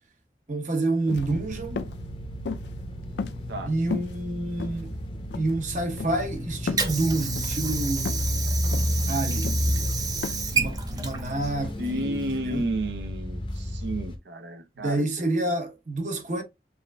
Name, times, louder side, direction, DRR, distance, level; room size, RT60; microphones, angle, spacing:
voice 1, 0.5-1.8 3.7-4.9 5.3-8.2 9.1-9.8 10.5-12.2 12.5-12.7 14.8-16.4, right 2 dB, 45° right, 0.9 m, -28 dB
sound 1, 1.0-1.3 1.8-2.0 2.4-2.8 3.2-3.6 3.9-4.2 4.6-5.0 5.3-5.5 6.0-6.2 6.7-6.9 7.4-7.6 8.0-8.3 8.7-9.0 9.4-9.7 10.2-10.3, left 4 dB, 75° left, 0.4 m, -33 dB
sound 2, 1.2-14.2, left 1 dB, 30° left, 0.6 m, -32 dB
Water / Sink (filling or washing), 6.3-12.3, right 5 dB, 20° right, 0.5 m, -31 dB
voice 2, 11.8-15.3, right 1 dB, 75° right, 0.7 m, -32 dB
6.9 x 2.5 x 2.2 m
head